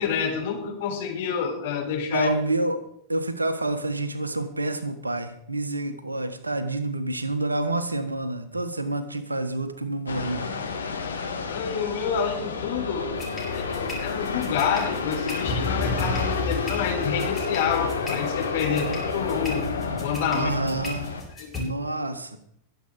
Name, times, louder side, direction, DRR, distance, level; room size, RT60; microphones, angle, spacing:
voice 1, 0.0-2.3 11.5-13.1 13.5-19.7 20.0-20.5 21.4-21.5, left 7 dB, 55° left, 2 dB, 3.9 m, -28 dB
voice 2, 2.1-2.8 3.1-10.5 20.3-21.2 21.6-22.4, right 2 dB, 80° right, 11 dB, 1.4 m, -28 dB
sound 1, 10.1-21.2, left 5 dB, 75° left, 1.9 m, -30 dB
sound 2, 13.2-21.6, left 2 dB, 10° left, 7.7 m, -33 dB
22.5 x 8.1 x 4.8 m, 0.70 s
figure-of-eight pair, 90°, 0 cm